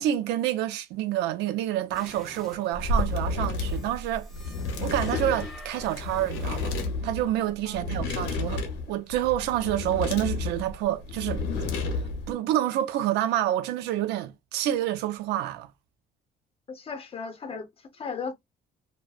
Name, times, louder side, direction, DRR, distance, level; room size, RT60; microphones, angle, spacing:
voice 1, 0.0-4.3 4.8-6.7 7.0-11.4 12.3-15.7, right 12 dB, 85° right, 0.5 m, -28 dB
sound 1, 1.9-6.9, left 1 dB, ahead, 0.9 m, -48 dB
sound 2, 2.7-12.3, left 2 dB, 90° left, 0.8 m, -31 dB
voice 2, 7.6-8.0 16.7-18.3, left 5 dB, 35° left, 0.7 m, -36 dB
2.6 x 2.1 x 2.3 m
cardioid pair, 110°, 17 cm